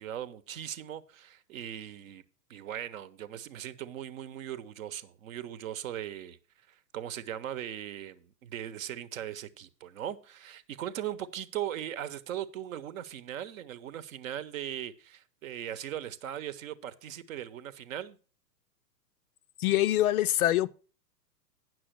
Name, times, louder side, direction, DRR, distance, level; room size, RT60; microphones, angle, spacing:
voice 1, 0.0-2.2 2.5-6.4 6.7-18.2, right 11 dB, 55° right, 0.9 m, -39 dB
voice 2, 19.6-20.8, left 14 dB, 60° left, 0.5 m, -25 dB
9.1 x 6.2 x 5.9 m
figure-of-eight pair, 110°, 49 cm